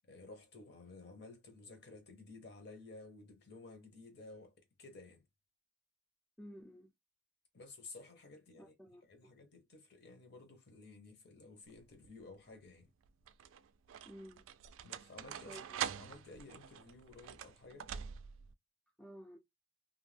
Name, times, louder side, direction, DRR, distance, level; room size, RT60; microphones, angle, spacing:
voice 1, 0.0-5.2 7.5-8.7 9.0-12.9 14.8-17.9, left 3 dB, 55° left, 0.8 m, -54 dB
voice 2, 6.4-6.9 8.6-9.0 14.1-14.5 15.5-15.8 19.0-19.4, equal, 5° left, 0.3 m, -53 dB
sound 1, 11.7-12.2 13.0-18.5, right 9 dB, 85° right, 0.3 m, -45 dB
2.5 x 2.1 x 3.2 m
head